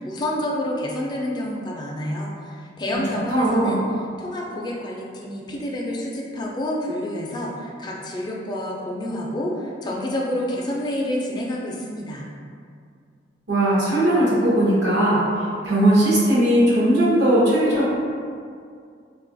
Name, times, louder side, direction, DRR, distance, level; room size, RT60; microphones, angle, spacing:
voice 1, 0.0-3.8 4.2-12.3, left 1 dB, 20° left, -2 dB, 0.3 m, -28 dB
voice 2, 3.3-3.8 13.5-15.2 15.6-17.9, right 1 dB, 65° right, -7 dB, 0.7 m, -18 dB
3.5 x 2.3 x 2.5 m, 2.2 s
head